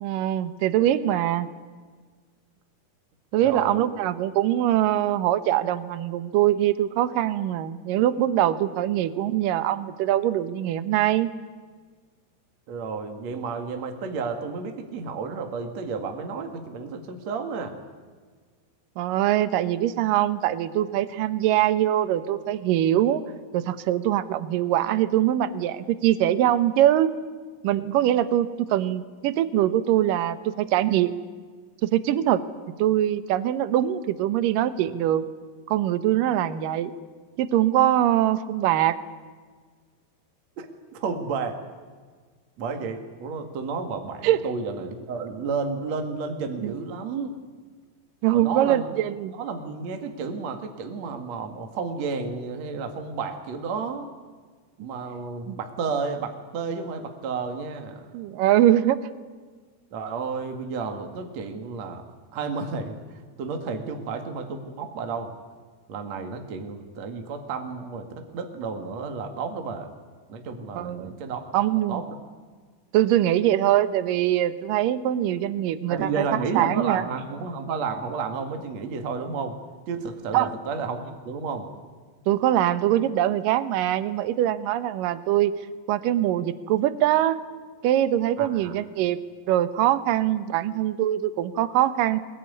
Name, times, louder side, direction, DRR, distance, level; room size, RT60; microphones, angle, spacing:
voice 1, 0.0-1.5 3.3-11.3 19.0-23.2 23.5-27.1 27.6-31.1 31.8-32.4 32.8-35.2 35.7-36.9 37.4-39.0 44.2-44.4 46.6-46.7 48.2-49.4 55.5-55.6 58.1-59.0 70.8-71.1 71.5-72.0 72.9-76.2 76.6-77.0 80.3-80.5 82.3-85.5 85.9-87.4 87.8-89.2 89.5-92.2, right 12 dB, 70° right, 13 dB, 2.3 m, -23 dB
voice 2, 3.4-3.9 12.7-17.8 40.6-40.7 40.9-41.6 42.6-47.3 48.3-48.9 49.3-54.1 54.8-58.2 59.9-62.0 62.3-65.3 65.9-69.9 70.3-71.4 71.9-72.2 75.9-79.6 79.9-81.7 88.4-88.8, right 5 dB, 50° right, 5 dB, 2.6 m, -31 dB
23.5 x 21.5 x 9.6 m, 1.5 s
omnidirectional pair, 4.9 m